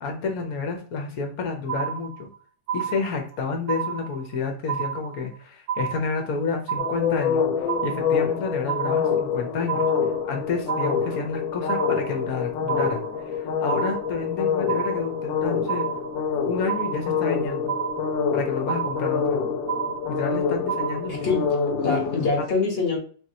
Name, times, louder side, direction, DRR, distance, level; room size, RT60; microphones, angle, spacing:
voice 1, 0.0-2.3 2.7-9.9 10.2-15.9 16.5-17.7 18.3-19.4 20.1-21.1, left 4 dB, 60° left, 3 dB, 1.2 m, -30 dB
sound 1, 1.7-2.4 2.7-3.4 3.7-4.4 4.7-5.4 5.7-6.4 6.7-7.4 7.7-8.4 8.7-9.4 9.7-10.4 10.7-11.4 11.7-12.4 12.7-13.4 13.7-14.4 14.7-15.4 15.7-16.4 16.7-17.4 17.7-18.4 18.7-19.4 19.7-20.4 20.7-21.4, right 8 dB, 85° right, 2.3 m, -30 dB
sound 2, 6.8-22.3, left 6 dB, 85° left, 1.4 m, -26 dB
voice 2, 21.1-21.5 21.8-23.0, left 4 dB, 40° left, -1 dB, 1.1 m, -24 dB
4.1 x 3.0 x 2.7 m, 0.43 s
omnidirectional pair, 2.0 m